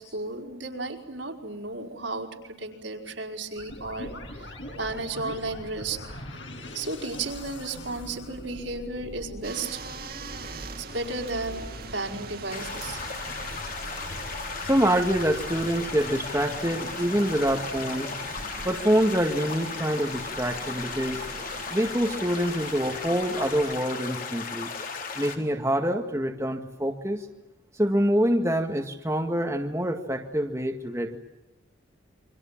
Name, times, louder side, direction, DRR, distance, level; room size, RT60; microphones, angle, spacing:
voice 1, 0.0-6.0 6.7-9.8 10.8-13.0, right 3 dB, 75° right, 2 dB, 4.7 m, -34 dB
sound 1, 3.6-18.5, left 1 dB, 70° left, 7.7 m, -43 dB
sound 2, 9.4-23.8, right 3 dB, 50° right, 2.2 m, -42 dB
sound 3, 12.5-25.4, left 4 dB, 45° left, 3.9 m, -36 dB
voice 2, 14.6-18.1 18.6-21.2 21.7-24.7 25.2-27.3 27.7-31.2, equal, 15° right, 3 dB, 1.9 m, -26 dB
29.0 x 25.0 x 7.4 m, 1.0 s
head